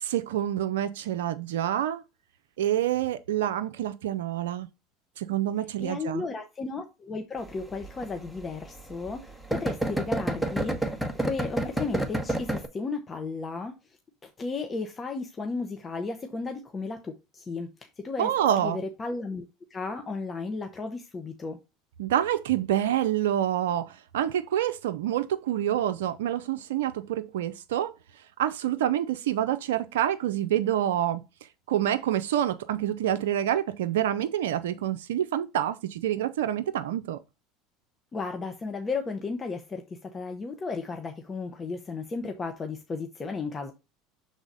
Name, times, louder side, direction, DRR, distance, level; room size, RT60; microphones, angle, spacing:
voice 1, 0.0-2.0 2.6-4.7 5.2-6.2 18.2-18.8 22.0-27.9 28.4-31.2 31.7-37.2, right 11 dB, 80° right, 0.4 m, -27 dB
voice 2, 5.8-11.0 11.2-18.3 18.6-19.4 19.7-21.6 38.1-43.7, left 4 dB, 30° left, 1.0 m, -34 dB
sound 1, 7.4-12.7, right 1 dB, ahead, 1.2 m, -29 dB
6.1 x 3.9 x 4.0 m
hypercardioid pair, 85°, 0 cm